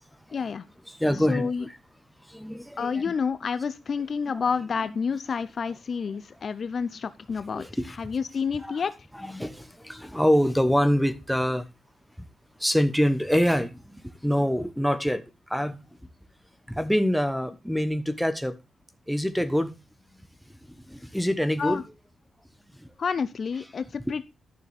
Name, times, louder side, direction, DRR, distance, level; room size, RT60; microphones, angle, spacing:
voice 1, 0.3-0.6 1.3-1.6 2.8-7.6 8.0-8.9 21.6-21.8 23.0-24.2, left 6 dB, 45° left, 0.5 m, -29 dB
voice 2, 0.9-1.8 2.3-3.0 4.3-4.5 4.8-4.9 6.6-6.8 7.5-8.0 8.6-8.8 9.1-11.7 12.2-12.3 12.6-15.8 16.7-18.6 19.1-19.7 20.7-21.8 22.7-22.9 24.0-24.2, equal, ahead, 0.9 m, -26 dB
11.5 x 6.8 x 3.4 m
cardioid pair, 120°, 0 cm